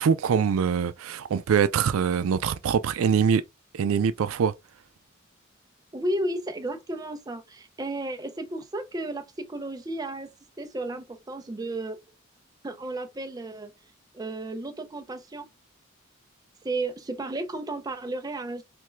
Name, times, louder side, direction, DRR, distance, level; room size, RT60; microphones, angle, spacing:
voice 1, 0.0-3.4 3.7-4.5, right 7 dB, 90° right, 0.4 m, -23 dB
voice 2, 5.9-12.0 12.6-13.7 14.1-15.5 16.6-18.6, right 2 dB, 20° right, 0.4 m, -33 dB
3.3 x 2.2 x 3.1 m
head